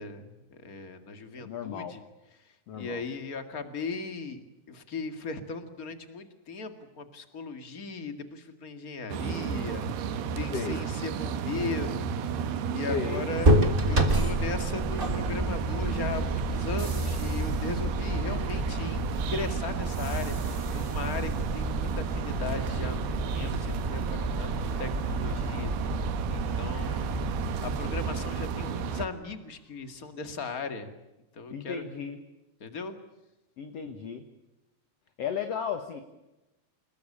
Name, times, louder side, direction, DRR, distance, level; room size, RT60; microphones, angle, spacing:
voice 1, 0.0-2.0 2.4-4.4 4.7-13.6 13.9-27.1 27.6-30.9 31.3-31.9 32.6-33.0, left 4 dB, 35° left, 8 dB, 1.6 m, -38 dB
voice 2, 1.4-2.0 2.7-3.0 10.5-10.8 12.9-13.3 31.5-32.2 33.6-34.3 35.2-36.0, left 7 dB, 55° left, 7 dB, 1.9 m, -35 dB
sound 1, 9.1-29.1, right 7 dB, 75° right, 3.3 m, -33 dB
Factory environment mix, 13.4-29.1, right 1 dB, 30° right, 1.0 m, -30 dB
29.0 x 20.5 x 8.6 m, 0.99 s
omnidirectional pair, 4.7 m